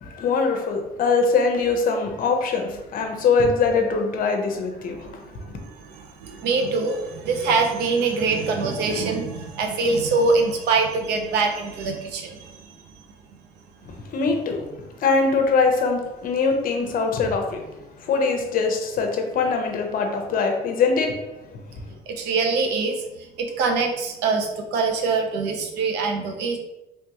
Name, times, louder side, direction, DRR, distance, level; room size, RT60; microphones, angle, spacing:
voice 1, 0.0-5.1 14.1-14.7 15.0-17.6 18.0-21.2 21.5-21.6, left 4 dB, 55° left, 4 dB, 0.7 m, -22 dB
voice 2, 4.9-12.8 22.1-26.6, right 4 dB, 80° right, 4 dB, 0.7 m, -24 dB
3.5 x 3.1 x 2.9 m, 0.95 s
cardioid pair, 110°, 17 cm